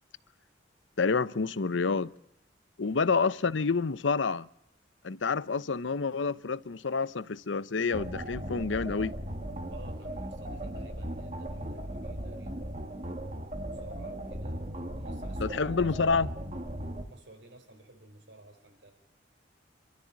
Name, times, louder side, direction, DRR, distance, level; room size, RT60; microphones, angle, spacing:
voice 1, 1.0-2.1 2.8-4.5 5.0-9.1 15.4-16.3, left 4 dB, 90° left, 0.7 m, -28 dB
sound 1, 7.9-17.0, right 1 dB, 40° right, 2.1 m, -37 dB
voice 2, 9.7-12.8 13.6-14.7 14.9-16.3 17.0-18.9, right 1 dB, 85° right, 5.0 m, -52 dB
27.5 x 13.0 x 8.5 m
head